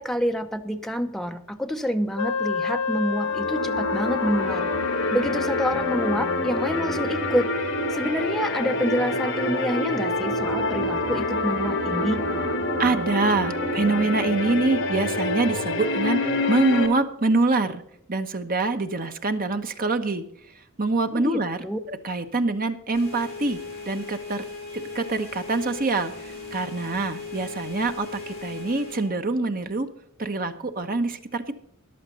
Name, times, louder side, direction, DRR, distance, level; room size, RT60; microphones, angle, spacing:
voice 1, 0.0-4.7 5.1-7.5 7.9-12.3 21.1-21.8, equal, ahead, 5 dB, 0.7 m, -27 dB
Wind instrument woodwind instrument, 2.2-6.9, left 6 dB, 85° left, 0.5 m, -29 dB
sound 1, 3.2-16.9, left 2 dB, 60° left, 2.1 m, -27 dB
voice 2, 12.8-16.2 16.5-17.8 18.1-20.3 20.8-21.6 21.9-23.6 23.9-24.4 24.7-29.9 30.2-31.6, right 3 dB, 40° right, 8 dB, 1.0 m, -25 dB
sound 2, 22.9-29.1, left 4 dB, 30° left, 5.7 m, -38 dB
14.0 x 11.0 x 4.0 m, 0.74 s
head